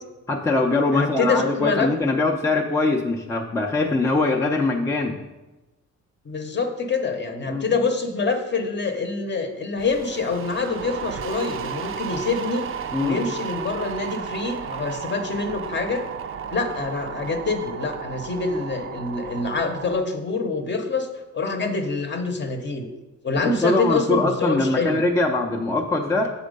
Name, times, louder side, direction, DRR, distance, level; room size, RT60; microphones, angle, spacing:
voice 1, 0.3-5.2 7.5-7.6 12.9-13.2 23.4-26.3, left 2 dB, 10° left, 0 dB, 0.5 m, -22 dB
voice 2, 0.9-2.2 6.2-12.7 13.0-16.0 16.5-21.1 21.3-22.9 23.2-25.0, left 4 dB, 35° left, 6 dB, 0.8 m, -26 dB
sound 1, 9.8-20.0, right 7 dB, 45° right, 0.5 m, -34 dB
7.3 x 4.3 x 5.2 m, 1.1 s
cardioid pair, 110°, 31 cm